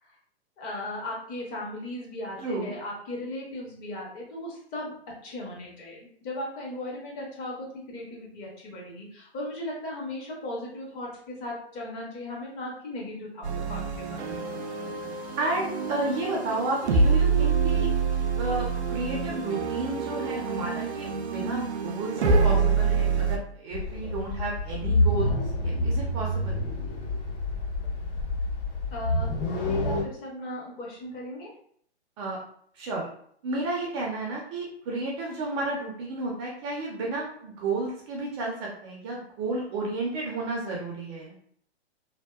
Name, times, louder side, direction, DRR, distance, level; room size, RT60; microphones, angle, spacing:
voice 1, 0.6-4.9 5.2-14.3 28.9-29.3 29.6-31.5, left 1 dB, 30° left, -3 dB, 0.8 m, -37 dB
voice 2, 2.4-2.7 15.4-17.9 18.3-25.3 25.6-26.6 32.2-32.4 32.8-33.1 33.4-41.3, right 2 dB, 25° right, -2 dB, 0.5 m, -32 dB
sound 1, 13.4-23.4, right 5 dB, 75° right, 0.5 m, -26 dB
sound 2, 23.7-30.0, left 1 dB, 55° left, 1.4 m, -28 dB
2.7 x 2.2 x 2.2 m, 0.62 s
hypercardioid pair, 125°, 33 cm